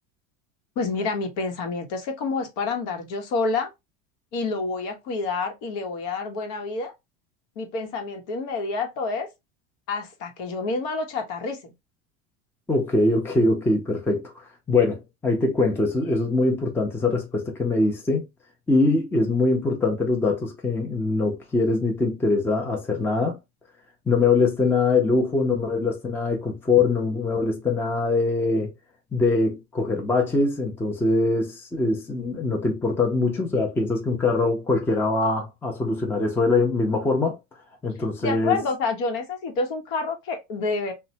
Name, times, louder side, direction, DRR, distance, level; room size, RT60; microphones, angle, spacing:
voice 1, 0.8-3.7 4.3-6.9 7.6-9.3 9.9-11.7 38.2-40.9, left 4 dB, 60° left, 1.0 m, -28 dB
voice 2, 12.7-18.3 18.7-23.4 24.1-28.7 29.1-37.4 37.8-38.6, left 3 dB, 5° left, 0.5 m, -23 dB
3.0 x 2.2 x 2.7 m
supercardioid pair, 130°, 37 cm